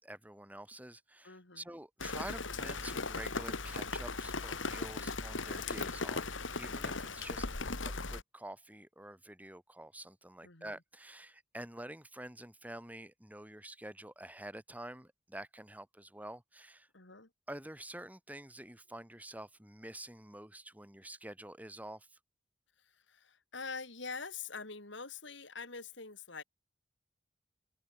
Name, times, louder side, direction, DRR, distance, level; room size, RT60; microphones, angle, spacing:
voice 1, 0.0-7.5 7.8-16.9 17.5-22.2, right 1 dB, 10° right, 4.9 m, -48 dB
voice 2, 1.2-1.6 10.4-10.7 16.9-17.3 22.8-26.4, left 4 dB, 70° left, 3.9 m, -45 dB
Rain, 2.0-8.2, left 3 dB, 85° left, 3.0 m, -38 dB
open air
head